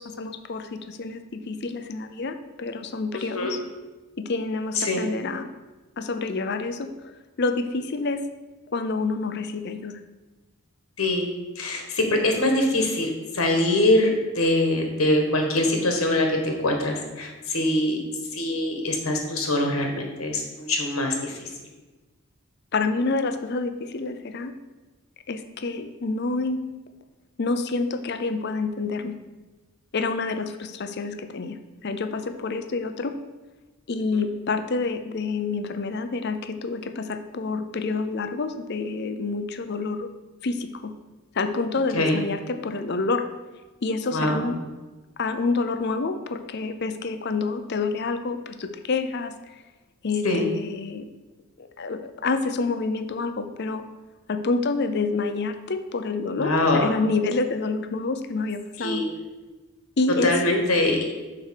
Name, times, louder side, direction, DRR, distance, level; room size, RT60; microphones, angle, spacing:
voice 1, 0.0-3.6 4.2-5.5 6.0-7.1 7.4-8.2 8.7-10.0 22.7-24.5 25.3-26.6 27.4-29.2 29.9-33.1 33.9-40.1 40.4-40.9 41.3-43.2 43.8-44.6 45.2-49.3 50.0-51.1 51.6-53.8 54.3-59.0 60.0-60.6, left 3 dB, 50° left, 9 dB, 0.6 m, -28 dB
voice 2, 3.1-3.6 4.7-5.0 11.0-11.3 11.5-18.0 18.3-21.4 34.1-34.2 41.9-42.2 44.1-44.5 50.2-50.5 56.4-56.9 58.8-59.1 60.2-61.0, left 1 dB, 85° left, 3 dB, 1.6 m, -23 dB
6.5 x 4.7 x 6.5 m, 1.2 s
head